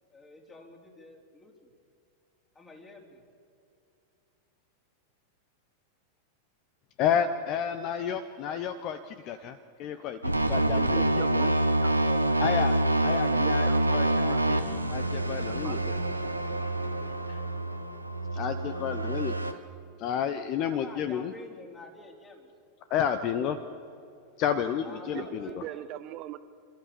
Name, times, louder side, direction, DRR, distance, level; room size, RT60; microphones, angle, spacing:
voice 1, 0.1-1.7 2.6-3.2 20.6-22.5 24.8-25.9, left 2 dB, 15° left, 1 dB, 3.6 m, -49 dB
voice 2, 7.0-10.2 10.5-11.5 12.4-12.7 13.0-14.6 14.9-16.0 17.3-17.4 18.3-19.6 20.0-21.3 22.9-23.6 24.4-25.6, left 8 dB, 40° left, 11 dB, 0.9 m, -31 dB
sound 1, 10.2-19.5, right 1 dB, 85° right, 1.2 m, -27 dB
voice 3, 10.9-11.5 11.8-12.3 13.4-14.6 15.4-16.3 25.1-26.4, right 14 dB, 40° right, 12 dB, 0.6 m, -41 dB
28.0 x 13.5 x 7.0 m, 2.5 s
figure-of-eight pair, 90°, 0 cm